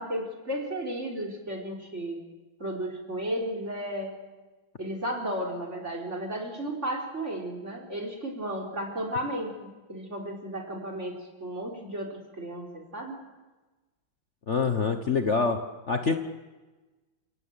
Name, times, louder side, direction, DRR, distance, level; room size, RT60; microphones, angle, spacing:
voice 1, 0.0-2.2 2.6-4.1 4.8-13.2, right 1 dB, 35° right, 1 dB, 4.6 m, -34 dB
voice 2, 14.5-15.6 15.9-16.2, left 4 dB, 40° left, 6 dB, 1.3 m, -25 dB
28.5 x 18.0 x 9.0 m, 1.2 s
omnidirectional pair, 2.1 m